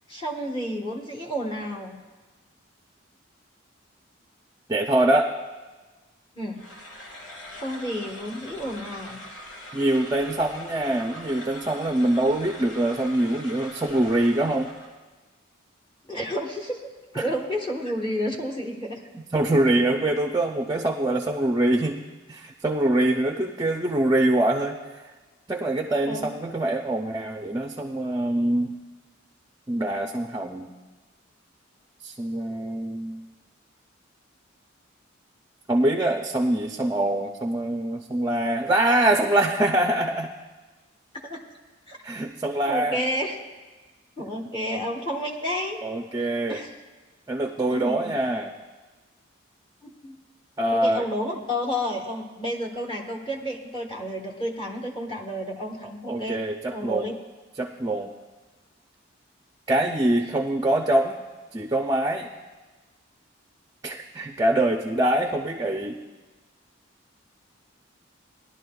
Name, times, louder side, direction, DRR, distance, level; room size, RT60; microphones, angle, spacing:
voice 1, 0.1-2.0 6.3-6.6 7.5-9.2 16.1-16.8 17.1-19.0 26.1-26.3 41.2-41.4 41.9-42.0 42.7-43.4 44.2-45.8 46.2-46.7 47.7-48.1 49.8-50.1 50.7-56.4 56.7-57.1, equal, 25° left, 0 dB, 1.2 m, -31 dB
voice 2, 4.7-5.3 9.7-14.7 17.2-17.3 19.1-22.0 22.3-24.8 25.5-28.7 29.7-30.7 32.0-33.2 35.7-40.3 42.0-43.0 45.8-46.6 47.3-48.5 50.6-51.0 56.1-57.1 57.6-58.1 59.7-61.2 61.5-62.3 63.8-66.0, right 1 dB, 15° right, 4 dB, 0.4 m, -24 dB
sound 1, 6.6-15.0, left 1 dB, 75° left, 1.4 m, -42 dB
19.0 x 11.0 x 2.3 m, 1.3 s
head